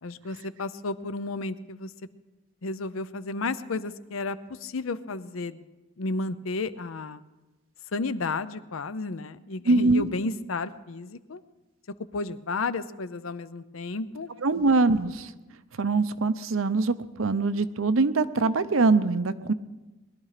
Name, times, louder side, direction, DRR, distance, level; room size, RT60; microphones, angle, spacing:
voice 1, 0.0-1.9 2.6-5.7 6.0-7.2 7.9-11.4 12.1-14.3, left 3 dB, 80° left, 14 dB, 0.7 m, -32 dB
voice 2, 9.7-10.1 14.4-15.3 15.8-19.5, right 3 dB, 85° right, 12 dB, 0.7 m, -23 dB
20.5 x 12.0 x 5.0 m, 1.1 s
head